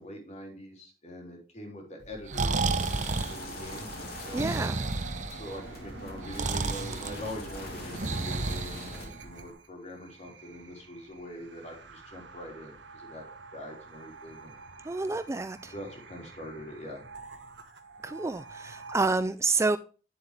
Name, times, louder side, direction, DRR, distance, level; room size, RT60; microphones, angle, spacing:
voice 1, 0.0-2.7 3.3-3.9 4.2-4.4 5.3-13.2 13.5-14.6 15.7-17.0, equal, 40° left, 3.7 m, -43 dB
Breathing, 2.1-9.5, right 3 dB, 45° right, 0.8 m, -32 dB
sound 1, 2.3-19.2, right 3 dB, 85° right, 1.3 m, -48 dB
sound 2, 2.8-9.0, left 2 dB, 60° left, 3.1 m, -43 dB
voice 2, 4.3-4.8 14.8-15.7 18.0-19.8, right 3 dB, 15° right, 0.4 m, -29 dB
9.8 x 7.6 x 3.4 m
head